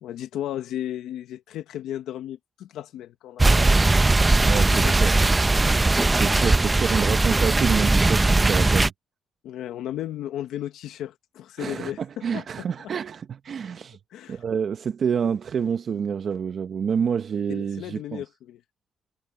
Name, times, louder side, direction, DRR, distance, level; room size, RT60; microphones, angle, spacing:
voice 1, 0.0-4.0 4.5-5.0 9.4-12.9 14.1-14.4 17.5-18.6, left 12 dB, 85° left, 1.1 m, -35 dB
sound 1, 3.4-8.9, right 2 dB, 20° right, 0.8 m, -19 dB
voice 2, 4.4-5.1 6.1-8.9 11.6-14.0 14.3-18.2, right 7 dB, 55° right, 0.8 m, -28 dB
cardioid pair, 90°, 0 cm